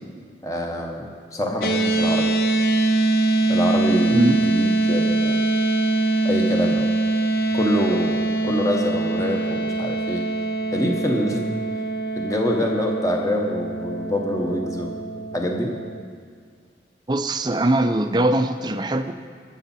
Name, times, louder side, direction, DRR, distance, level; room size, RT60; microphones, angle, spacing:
voice 1, 0.4-2.3 3.5-5.4 6.2-6.9 7.5-10.2 10.7-11.5 12.2-14.9 15.3-15.7, left 1 dB, 20° left, 1 dB, 1.0 m, -25 dB
sound 1, 1.6-16.0, right 2 dB, 55° left, 0.6 m, -23 dB
voice 2, 4.1-4.4 17.1-19.1, right 1 dB, 25° right, 8 dB, 0.4 m, -21 dB
18.5 x 7.0 x 4.2 m, 2.1 s
head